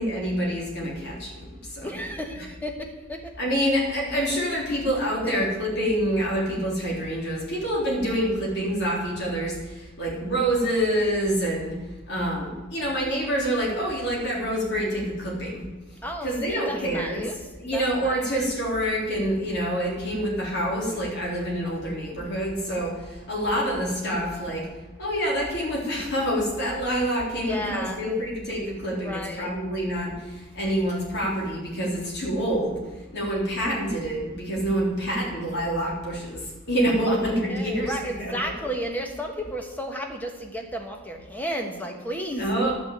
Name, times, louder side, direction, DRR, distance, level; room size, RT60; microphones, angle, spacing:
voice 1, 0.0-2.0 2.3-2.5 3.4-11.8 12.1-15.6 16.2-17.2 17.6-24.7 25.0-32.8 33.1-38.5 42.4-42.7, equal, 55° left, -3 dB, 3.7 m, -27 dB
voice 2, 1.8-3.3 5.2-5.4 16.0-17.3 17.7-18.2 27.4-28.0 28.9-29.5 37.5-42.5, equal, 10° left, 3 dB, 1.4 m, -33 dB
11.0 x 6.3 x 8.5 m, 1.1 s
head